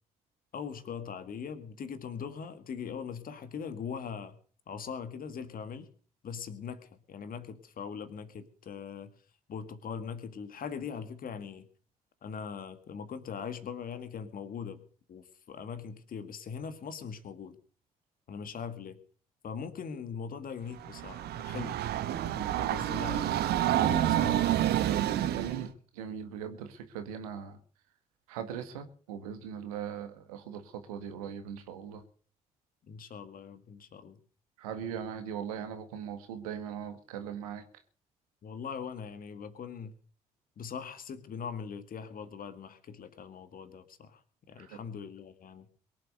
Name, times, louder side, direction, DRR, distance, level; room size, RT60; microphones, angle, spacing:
voice 1, 0.5-4.4 4.7-5.9 6.2-9.1 9.5-11.7 12.2-14.8 15.1-17.6 18.3-19.0 19.4-21.8 22.2-23.4 23.7-24.5 32.9-34.2 38.4-39.9 40.6-44.2 44.5-45.7, left 6 dB, 50° left, 11 dB, 1.8 m, -41 dB
Train, 20.8-25.7, right 12 dB, 60° right, 1.1 m, -28 dB
voice 2, 25.3-25.7 25.9-27.6 28.3-30.6 30.9-32.0 34.6-37.6 44.6-44.8, right 8 dB, 75° right, 8 dB, 1.6 m, -39 dB
22.5 x 7.6 x 6.6 m, 0.44 s
figure-of-eight pair, 40°, 19 cm